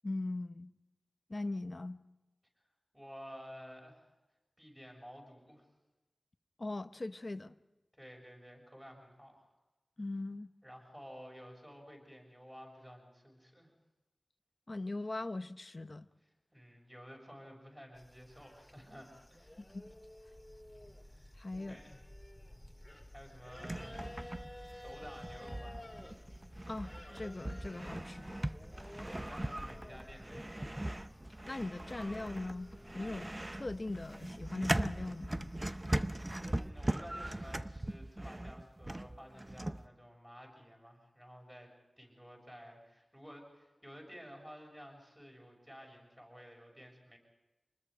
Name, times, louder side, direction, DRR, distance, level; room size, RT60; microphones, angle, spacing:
voice 1, 0.0-0.7 1.3-2.0 6.6-7.5 10.0-10.5 14.7-16.1 19.6-19.9 21.4-21.8 26.7-28.4 31.5-35.5, left 2 dB, 45° left, 0.8 m, -40 dB
voice 2, 2.9-4.1 4.6-5.7 7.9-9.5 10.6-13.7 16.5-19.6 21.0-22.0 23.1-24.4 24.7-26.0 29.0-30.8 36.3-41.7 42.0-47.2, equal, 10° right, 6.8 m, -53 dB
sound 1, 17.9-36.7, left 1 dB, 10° left, 2.2 m, -53 dB
sound 2, 23.6-39.8, right 1 dB, 25° right, 0.7 m, -40 dB
26.0 x 20.5 x 5.2 m
wide cardioid pair, 70°, 0 cm